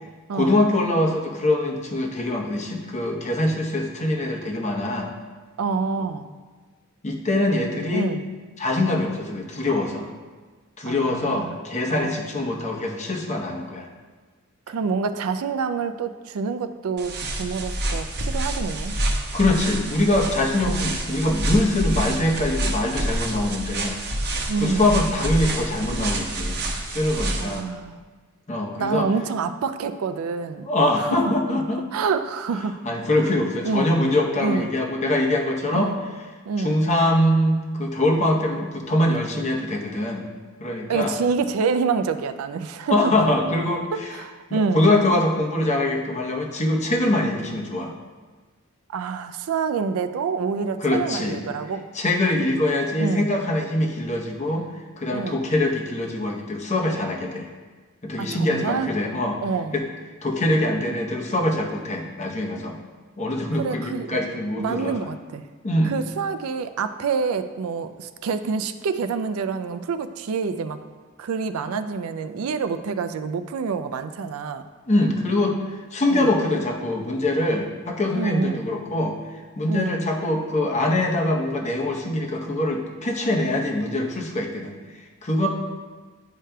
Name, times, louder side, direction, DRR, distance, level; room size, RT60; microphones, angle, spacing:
voice 1, 0.3-5.1 7.0-8.1 8.6-10.1 10.8-13.9 19.3-24.0 24.6-27.7 28.5-29.1 30.7-31.8 32.8-35.9 36.6-40.3 40.6-41.1 42.9-44.1 44.5-47.9 50.8-51.4 51.9-54.7 55.0-57.5 58.0-59.4 59.7-59.8 60.2-62.8 63.2-65.1 65.6-65.9 74.8-75.6 75.9-85.5, left 1 dB, 35° left, 1 dB, 0.8 m, -23 dB
voice 2, 5.6-6.3 7.9-8.2 10.9-11.6 11.9-12.2 14.7-19.0 20.6-20.9 24.5-24.9 27.4-28.0 28.8-30.7 31.1-31.2 31.9-32.7 33.6-33.9 34.4-34.7 35.7-36.0 36.4-36.9 40.9-43.1 44.1-44.9 48.9-51.8 53.0-53.3 55.1-55.4 58.2-58.9 59.4-59.8 63.5-64.2 64.6-65.4 65.8-70.8 71.2-74.7 76.1-76.3 78.1-78.7 79.7-80.0, right 5 dB, 80° right, 10 dB, 0.4 m, -27 dB
sound 1, 17.0-27.6, right 1 dB, 50° right, 0.8 m, -27 dB
10.0 x 4.9 x 2.2 m, 1.4 s
head